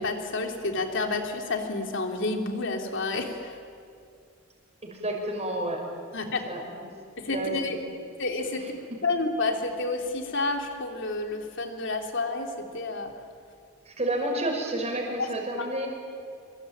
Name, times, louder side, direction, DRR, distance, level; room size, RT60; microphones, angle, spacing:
voice 1, 0.0-3.6 6.1-6.5 7.2-7.8 8.2-8.6 9.0-13.1 15.2-15.3 15.6-15.7, left 3 dB, 65° left, 3 dB, 3.5 m, -30 dB
voice 2, 4.8-5.8 6.5-6.9 7.3-7.8 8.6-8.7 13.9-15.9, right 1 dB, 35° right, 0 dB, 5.7 m, -30 dB
27.0 x 24.5 x 9.0 m, 2.3 s
head